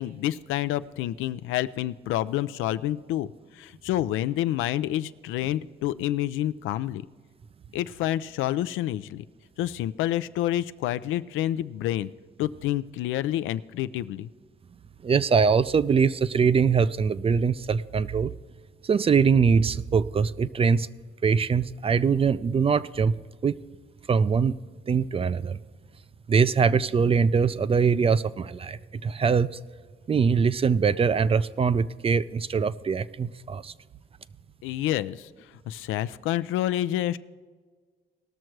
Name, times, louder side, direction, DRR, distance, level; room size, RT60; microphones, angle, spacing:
voice 1, 0.0-7.0 7.7-9.2 9.6-12.1 12.4-14.3 34.6-35.3 35.7-37.2, left 13 dB, 90° left, 0.4 m, -28 dB
voice 2, 15.0-18.3 18.9-20.9 21.2-23.1 23.4-23.5 24.1-24.6 24.9-25.6 26.3-29.6 30.1-33.7, right 5 dB, 30° right, 0.4 m, -22 dB
18.5 x 6.4 x 4.6 m
cardioid pair, 90°, 20 cm